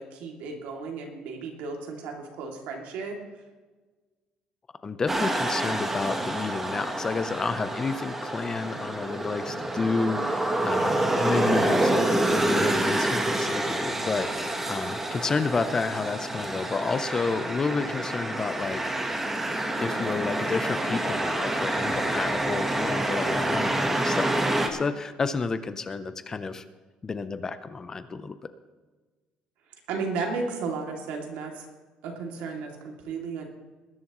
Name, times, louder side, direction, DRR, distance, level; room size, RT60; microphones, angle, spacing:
voice 1, 0.0-3.4 29.7-31.7 32.0-33.5, right 4 dB, 90° right, 1 dB, 2.6 m, -34 dB
voice 2, 4.8-18.8 19.8-26.6 27.0-28.4, left 4 dB, 20° left, 11 dB, 0.6 m, -30 dB
sound 1, 5.1-24.7, right 1 dB, 10° right, 1.2 m, -27 dB
20.5 x 11.0 x 3.1 m, 1.3 s
cardioid pair, 155°, 2 cm